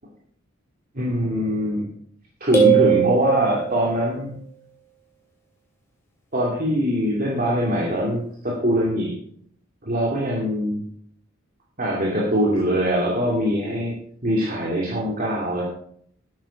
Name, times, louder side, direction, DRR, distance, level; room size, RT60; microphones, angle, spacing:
voice 1, 0.9-1.9 2.4-4.3 6.3-9.2 9.8-10.8 11.8-13.9 14.2-15.6, equal, 45° right, -4 dB, 2.5 m, -22 dB
sound 1, 2.5-4.1, right 10 dB, 15° left, 2.9 m, -20 dB
11.5 x 8.6 x 5.0 m, 0.63 s
head